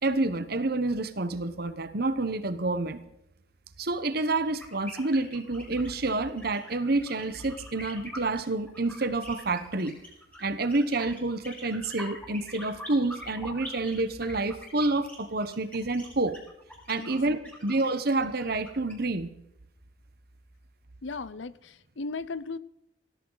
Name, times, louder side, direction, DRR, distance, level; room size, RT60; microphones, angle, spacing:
voice 1, 0.0-3.0 3.8-10.0 10.4-16.4 16.9-19.3, right 2 dB, 55° right, 1.1 m, -28 dB
sound 1, 4.5-18.9, equal, 10° left, 5.1 m, -44 dB
voice 2, 21.0-22.6, left 3 dB, 75° left, 0.7 m, -36 dB
18.0 x 15.0 x 4.0 m
head